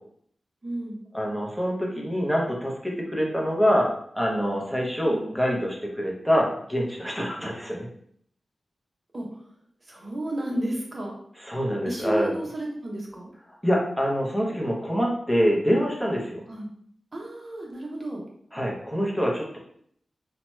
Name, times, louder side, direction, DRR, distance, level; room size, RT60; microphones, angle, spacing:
voice 1, 0.6-1.0 5.1-5.3 9.1-9.5 9.8-11.1 11.8-13.3 16.5-16.7 17.1-18.2, right 1 dB, 35° right, -1 dB, 0.8 m, -32 dB
voice 2, 1.1-7.9 11.5-12.3 13.6-16.4 18.5-19.6, equal, ahead, -2 dB, 0.7 m, -25 dB
2.8 x 2.2 x 3.0 m, 0.63 s
wide cardioid pair, 105°, 0 cm